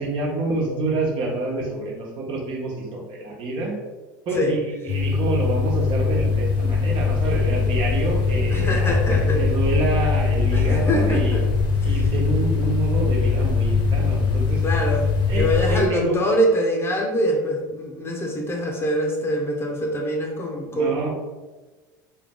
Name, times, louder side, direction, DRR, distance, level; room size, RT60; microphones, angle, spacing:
voice 1, 0.0-3.8 4.2-11.4 11.8-14.6 15.3-16.2 20.7-21.1, right 2 dB, 50° right, -1 dB, 1.2 m, -27 dB
sound 1, 4.9-15.9, left 4 dB, 50° left, 1.0 m, -21 dB
voice 2, 8.5-9.5 10.5-11.5 14.6-21.1, equal, 20° left, 0 dB, 0.9 m, -24 dB
3.4 x 3.1 x 3.7 m, 1.2 s
hypercardioid pair, 80°, 11 cm